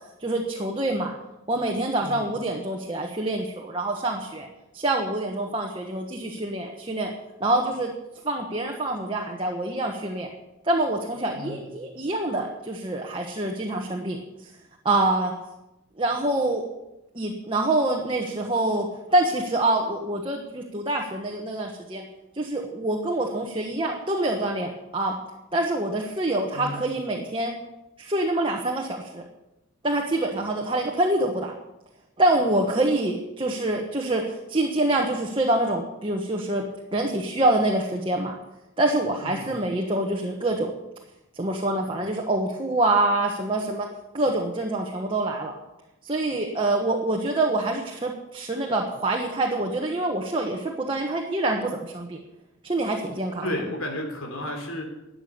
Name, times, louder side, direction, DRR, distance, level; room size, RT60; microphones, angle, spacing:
voice 1, 0.2-1.2 1.5-4.5 4.7-7.1 7.4-7.9 8.2-10.3 10.6-14.2 14.8-15.3 16.0-16.6 17.1-22.0 22.3-25.1 25.5-27.5 28.0-29.2 29.8-31.6 32.2-36.6 36.9-38.3 38.8-40.7 41.3-43.9 44.1-45.5 46.0-52.2 52.6-53.5, right 2 dB, 25° right, 0 dB, 1.2 m, -26 dB
voice 2, 53.4-54.8, left 1 dB, 85° left, 3 dB, 3.4 m, -32 dB
13.0 x 8.9 x 6.8 m, 0.94 s
head